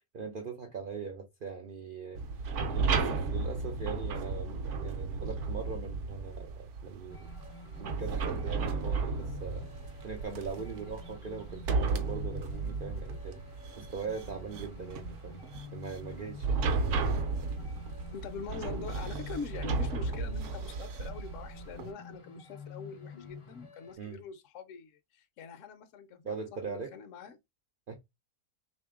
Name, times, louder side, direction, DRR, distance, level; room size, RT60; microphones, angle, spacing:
voice 1, 0.0-2.2 2.7-7.3 7.8-9.7 10.0-13.4 13.8-15.4 15.7-16.6 24.0-24.2 26.2-27.0 27.9-28.0, right 5 dB, 85° right, 0.4 m, -41 dB
sound 1, 2.2-21.9, right 4 dB, 60° right, 0.8 m, -34 dB
sound 2, 7.1-23.9, left 5 dB, 40° left, 0.4 m, -50 dB
voice 2, 18.1-27.4, left 6 dB, 65° left, 0.8 m, -44 dB
3.2 x 2.7 x 3.6 m
omnidirectional pair, 1.6 m